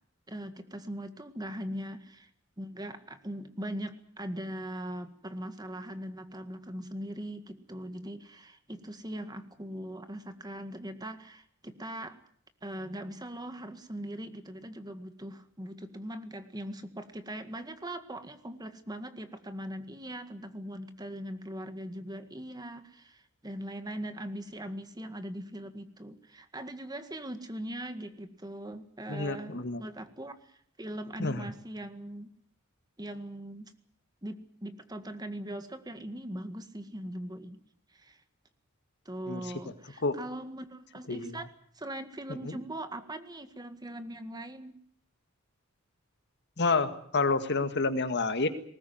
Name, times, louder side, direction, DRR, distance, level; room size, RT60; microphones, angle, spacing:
voice 1, 0.3-2.3 2.6-12.2 12.6-32.3 33.0-33.7 34.2-37.6 37.9-38.2 39.1-41.5 41.7-44.8, right 1 dB, 20° right, 9 dB, 1.9 m, -40 dB
voice 2, 29.1-29.8 31.2-31.5 39.3-39.4 40.0-40.2 41.1-41.4 42.4-42.5 46.6-48.5, left 3 dB, 55° left, 9 dB, 1.9 m, -29 dB
20.5 x 19.0 x 9.3 m, 0.63 s
head